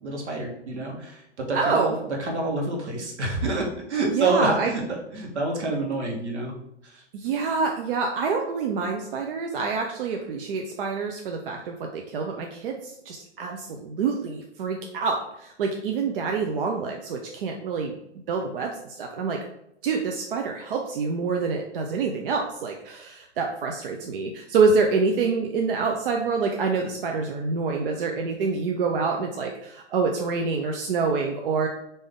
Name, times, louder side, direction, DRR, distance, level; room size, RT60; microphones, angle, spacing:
voice 1, 0.0-4.8 5.1-6.5 6.8-7.0, right 2 dB, 75° right, 0 dB, 1.2 m, -28 dB
voice 2, 1.5-2.0 4.1-4.7 7.1-17.9 18.3-19.4 19.8-31.7, right 4 dB, 55° right, 2 dB, 0.5 m, -26 dB
3.3 x 2.7 x 3.5 m, 0.77 s
hypercardioid pair, 125°, 34 cm